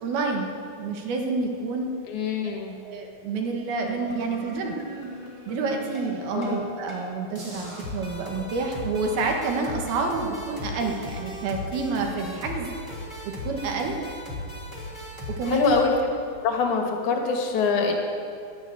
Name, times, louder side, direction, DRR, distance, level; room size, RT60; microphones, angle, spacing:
voice 1, 0.0-1.9 2.8-4.8 5.5-12.7 13.2-13.9 15.3-15.7, right 3 dB, 70° right, 2 dB, 3.2 m, -28 dB
voice 2, 2.1-2.8 6.3-6.6 15.5-15.9 16.4-17.9, left 5 dB, 60° left, 2 dB, 2.4 m, -24 dB
sound 1, 3.8-6.6 6.9-7.1 7.3-15.8, equal, 10° right, 2.5 m, -37 dB
12.5 x 9.9 x 8.5 m, 2.4 s
omnidirectional pair, 4.9 m